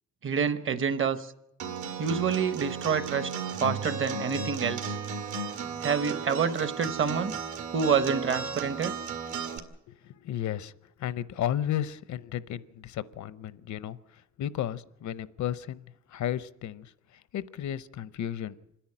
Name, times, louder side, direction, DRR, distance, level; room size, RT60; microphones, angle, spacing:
voice 1, 0.2-1.3 2.0-3.3 3.6-5.0 5.8-7.3 7.7-9.0, right 6 dB, 45° right, 14 dB, 1.0 m, -27 dB
Acoustic guitar, 1.6-9.6, right 5 dB, 75° right, 2.2 m, -34 dB
voice 2, 9.9-10.7 11.0-14.0 14.4-16.9 17.3-18.6, left 11 dB, 70° left, 18 dB, 0.7 m, -33 dB
26.5 x 10.5 x 9.9 m, 0.83 s
wide cardioid pair, 170°, 30 cm